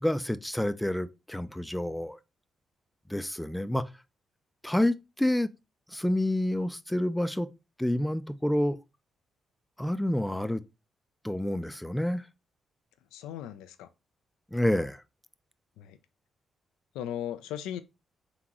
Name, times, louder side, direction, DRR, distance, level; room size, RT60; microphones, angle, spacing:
voice 1, 0.0-2.2 3.1-3.9 4.6-5.5 5.9-7.5 7.8-8.8 9.8-10.6 11.2-12.2 14.5-15.0, left 1 dB, 5° left, 0.4 m, -28 dB
voice 2, 13.1-13.9 15.8-16.0 16.9-17.8, left 10 dB, 90° left, 0.3 m, -37 dB
3.8 x 3.5 x 2.9 m
supercardioid pair, 55°, 0 cm